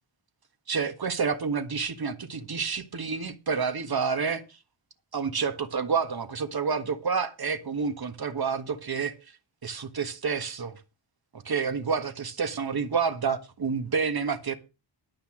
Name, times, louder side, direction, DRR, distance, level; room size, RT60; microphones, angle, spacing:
voice 1, 0.7-4.6 5.1-9.1 9.6-10.8 11.3-14.5, right 5 dB, 50° right, 1.6 m, -29 dB
12.0 x 5.8 x 7.4 m
wide cardioid pair, 130°, 48 cm